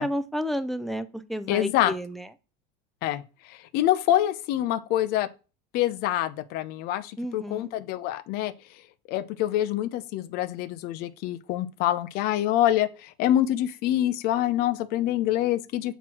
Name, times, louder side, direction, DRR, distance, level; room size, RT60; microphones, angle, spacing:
voice 1, 0.0-2.3 7.2-7.7, equal, ahead, 0.4 m, -31 dB
voice 2, 1.5-1.9 3.0-5.3 5.7-8.5 9.1-15.9, left 12 dB, 50° left, 0.6 m, -26 dB
8.0 x 3.1 x 5.8 m
cardioid pair, 150°, 20 cm